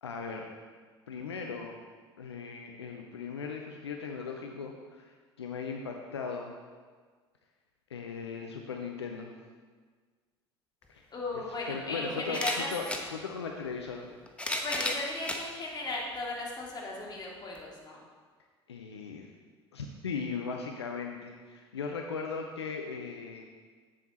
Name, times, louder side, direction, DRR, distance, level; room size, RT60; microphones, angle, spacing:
voice 1, 0.0-0.5 1.1-1.8 2.2-6.5 7.9-9.3 10.9-11.0 11.3-14.1 18.7-19.3 19.7-23.4, left 5 dB, 80° left, 2 dB, 0.6 m, -38 dB
sound 1, 10.9-11.0 12.3-13.1 14.1-15.4 16.2-16.3 17.6-17.7, left 1 dB, 10° left, 1.1 m, -33 dB
voice 2, 11.1-12.7 14.6-18.0, left 2 dB, 30° left, -3 dB, 2.4 m, -36 dB
7.8 x 7.4 x 4.1 m, 1.5 s
figure-of-eight pair, 60°, 14 cm